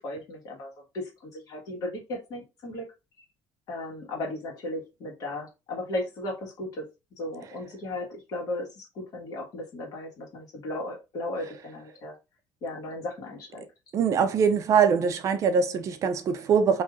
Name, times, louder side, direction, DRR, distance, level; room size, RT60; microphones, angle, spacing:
voice 1, 0.0-2.8 3.7-6.9 7.2-12.1 12.6-13.6, left 1 dB, 50° left, 1.4 m, -36 dB
voice 2, 13.9-16.8, right 6 dB, 40° right, 0.4 m, -23 dB
3.1 x 2.6 x 2.3 m
cardioid pair, 145°, 8 cm